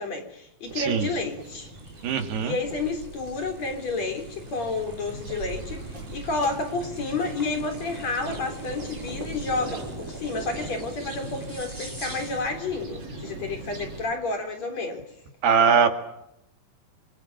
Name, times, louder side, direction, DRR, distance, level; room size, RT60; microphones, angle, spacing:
voice 1, 0.0-1.7 2.4-15.0, left 3 dB, 40° left, 6 dB, 4.3 m, -30 dB
sound 1, 0.6-14.1, right 2 dB, 45° right, 7.8 m, -40 dB
voice 2, 0.8-1.1 2.0-2.6 15.4-16.0, right 6 dB, 70° right, 7 dB, 4.1 m, -21 dB
sound 2, 1.6-12.6, right 1 dB, 5° right, 5.8 m, -44 dB
28.0 x 25.0 x 7.2 m, 0.81 s
omnidirectional pair, 5.0 m